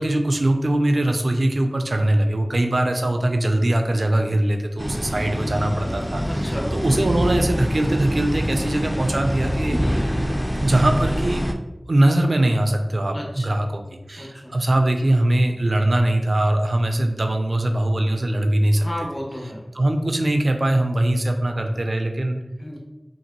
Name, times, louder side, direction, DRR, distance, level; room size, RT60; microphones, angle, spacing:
voice 1, 0.0-9.8 10.6-11.5 11.9-13.8 14.1-18.9 19.7-22.4, right 1 dB, 80° right, 5 dB, 0.5 m, -21 dB
sound 1, 4.8-11.5, equal, ahead, 0.5 m, -25 dB
voice 2, 6.3-6.7 9.8-10.0 13.1-13.5 14.2-14.5 18.7-19.6 22.6-22.8, equal, 40° left, -1 dB, 1.0 m, -33 dB
5.8 x 2.5 x 2.9 m, 1.0 s
wide cardioid pair, 45°, 0 cm